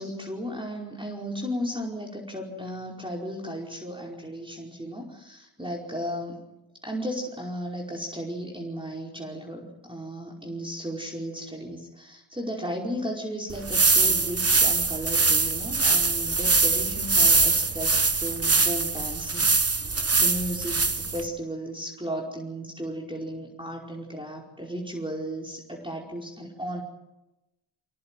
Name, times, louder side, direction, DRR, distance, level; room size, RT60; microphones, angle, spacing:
voice 1, 0.0-6.4 6.8-26.8, equal, 10° right, -1 dB, 5.0 m, -35 dB
sound 1, 13.5-21.3, right 4 dB, 35° right, 1.2 m, -23 dB
25.5 x 18.0 x 9.2 m, 0.94 s
wide cardioid pair, 65°, 44 cm